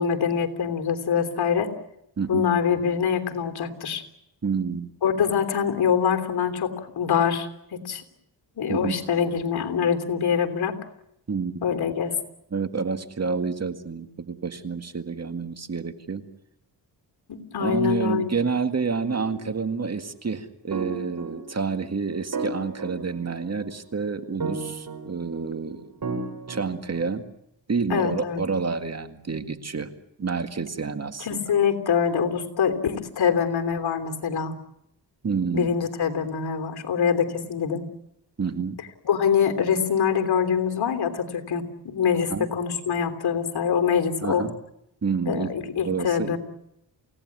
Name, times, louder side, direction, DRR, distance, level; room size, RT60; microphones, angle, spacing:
voice 1, 0.0-1.7 2.3-4.0 5.0-8.0 8.6-10.8 11.6-12.1 17.3-18.3 27.9-28.4 31.2-34.5 35.5-37.8 39.0-44.4 45.3-46.4, left 7 dB, 60° left, 7 dB, 3.3 m, -24 dB
voice 2, 2.2-2.5 4.4-4.9 8.7-9.0 11.3-11.6 12.5-16.2 17.6-25.9 26.5-27.3 27.7-29.9 30.2-31.4 35.2-35.7 38.4-38.8 42.3-42.5 44.2-44.6 45.0-45.5 45.8-46.4, right 5 dB, 35° right, 9 dB, 2.0 m, -28 dB
sound 1, 19.1-19.7 20.7-21.8 22.3-23.7 24.4-25.5 26.0-27.1, right 4 dB, 50° right, 6.5 m, -34 dB
28.5 x 17.5 x 9.6 m, 0.82 s
cardioid pair, 75°, 43 cm